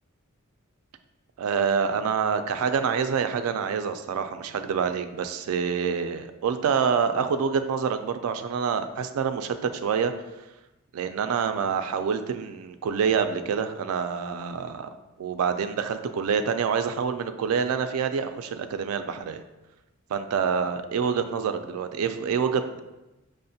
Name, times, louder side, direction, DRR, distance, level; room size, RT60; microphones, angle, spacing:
voice 1, 1.4-10.1 10.9-14.9 15.2-19.4 20.1-22.8, right 6 dB, 85° right, 10 dB, 0.3 m, -26 dB
5.6 x 2.0 x 2.6 m, 1.0 s
head